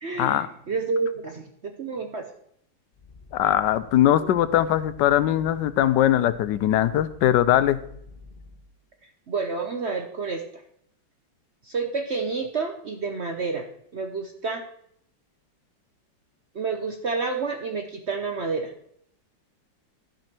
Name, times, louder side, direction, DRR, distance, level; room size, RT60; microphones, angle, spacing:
voice 1, 0.0-2.3 4.2-4.4 9.3-10.4 11.7-13.6 13.9-14.6 16.5-18.7, right 4 dB, 50° right, 5 dB, 0.8 m, -29 dB
sound 1, 2.9-8.7, left 3 dB, 35° left, 0.9 m, -48 dB
voice 2, 3.3-7.8, left 12 dB, 75° left, 14 dB, 1.2 m, -21 dB
11.5 x 5.4 x 5.9 m, 0.70 s
omnidirectional pair, 2.1 m